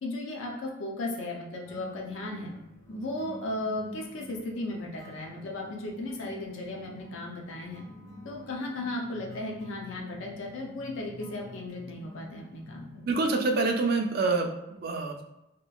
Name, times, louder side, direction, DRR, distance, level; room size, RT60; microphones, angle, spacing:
voice 1, 0.0-2.5 2.9-7.8 8.2-13.0, left 2 dB, 70° left, -1 dB, 0.5 m, -36 dB
sound 1, 1.7-13.0, left 1 dB, 15° left, 0.5 m, -48 dB
voice 2, 13.1-15.2, right 3 dB, 45° right, 4 dB, 0.3 m, -27 dB
2.9 x 2.3 x 2.3 m, 0.91 s
head